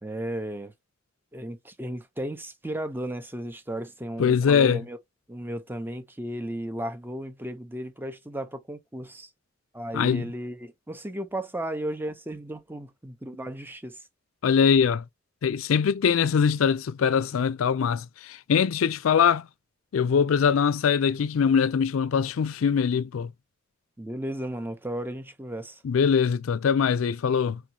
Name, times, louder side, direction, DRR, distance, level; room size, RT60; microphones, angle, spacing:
voice 1, 0.0-0.7 1.3-5.0 5.3-9.3 9.7-14.0 24.0-25.8, right 1 dB, 10° right, 0.8 m, -34 dB
voice 2, 4.2-4.8 9.9-10.3 14.4-15.0 15.4-19.5 19.9-23.3 25.8-27.6, left 6 dB, 75° left, 0.4 m, -22 dB
4.7 x 3.8 x 2.8 m
head